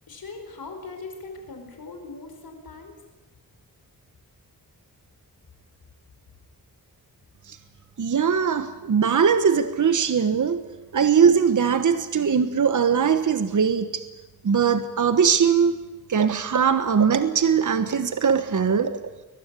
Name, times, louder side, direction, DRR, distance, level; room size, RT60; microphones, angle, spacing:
voice 1, 0.1-2.9, left 3 dB, 75° left, 5 dB, 5.1 m, -40 dB
voice 2, 8.0-10.6 10.9-14.0 14.4-15.8 16.1-19.0, right 6 dB, 55° right, 10 dB, 1.2 m, -21 dB
23.0 x 19.5 x 8.4 m, 1.1 s
wide cardioid pair, 140°, 36 cm